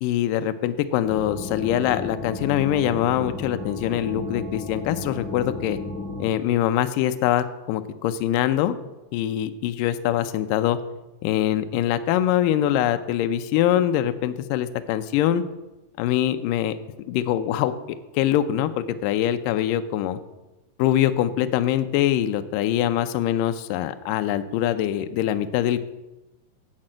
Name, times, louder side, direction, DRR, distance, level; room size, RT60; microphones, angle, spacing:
voice 1, 0.0-5.8 6.2-8.8 9.1-10.8 11.2-15.4 16.0-16.8 17.1-17.7 18.1-20.2 20.8-25.9, left 11 dB, 80° left, 10 dB, 2.1 m, -23 dB
sound 1, 1.0-6.3, left 2 dB, 60° left, 2.9 m, -34 dB
11.5 x 5.3 x 7.6 m, 1.0 s
omnidirectional pair, 4.1 m